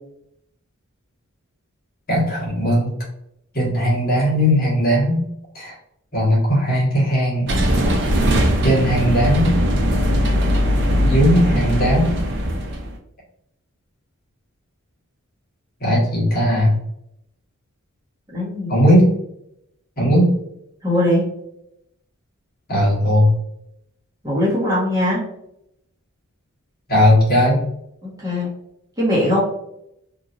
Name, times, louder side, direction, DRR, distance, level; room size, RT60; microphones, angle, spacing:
voice 1, 2.1-2.9 3.5-5.2 5.5-5.7 6.1-7.5 8.6-9.6 11.0-12.1 15.8-16.8 18.7-19.1 20.0-20.3 22.7-23.4 26.9-27.6, equal, 45° left, -6 dB, 1.4 m, -17 dB
sound 1, 7.5-13.0, equal, 50° right, 0.5 m, -19 dB
voice 2, 18.3-18.7 20.8-21.3 24.2-25.2 28.0-28.5 29.0-29.4, left 1 dB, 15° right, -8 dB, 1.1 m, -20 dB
3.0 x 2.6 x 2.4 m, 0.77 s
head